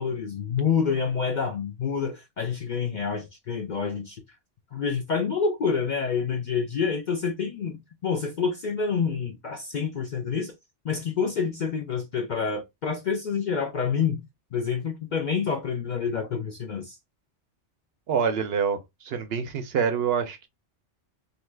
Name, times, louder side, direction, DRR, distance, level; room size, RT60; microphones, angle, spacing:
voice 1, 0.0-4.2 4.7-10.5 10.8-14.2 14.5-17.0, left 6 dB, 55° left, 0.5 m, -28 dB
voice 2, 18.1-20.5, right 6 dB, 65° right, 0.8 m, -26 dB
2.7 x 2.2 x 3.2 m
omnidirectional pair, 1.2 m